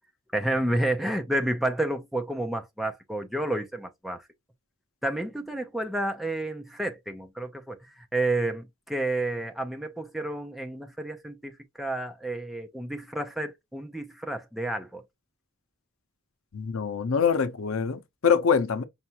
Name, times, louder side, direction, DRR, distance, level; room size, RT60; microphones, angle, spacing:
voice 1, 0.3-4.2 5.0-15.0, right 1 dB, ahead, 0.6 m, -30 dB
voice 2, 16.5-18.8, left 6 dB, 85° left, 0.6 m, -24 dB
5.5 x 2.4 x 2.8 m
head